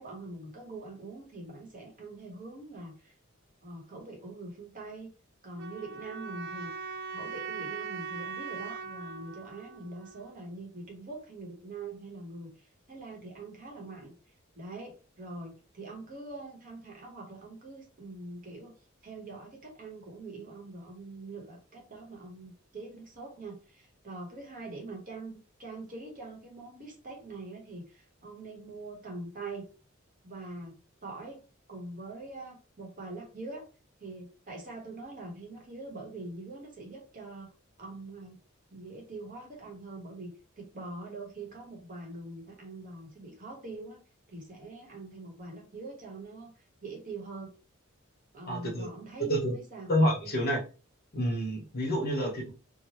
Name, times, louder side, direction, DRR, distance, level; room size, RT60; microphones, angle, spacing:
voice 1, 0.0-3.1 3.6-5.1 5.4-6.7 7.1-12.5 12.9-14.1 14.6-18.7 19.0-29.6 30.2-30.8 31.0-31.4 31.7-33.6 34.0-37.5 37.8-38.4 38.7-40.3 40.6-44.0 44.3-46.5 46.8-47.5 48.3-49.9, right 2 dB, 40° right, 1.0 m, -43 dB
sound 1, 5.6-10.6, right 5 dB, 60° right, 0.4 m, -40 dB
voice 2, 48.5-48.9 49.3-49.5 49.9-50.6 51.1-52.5, equal, 50° left, 1.1 m, -28 dB
2.8 x 2.1 x 2.9 m
head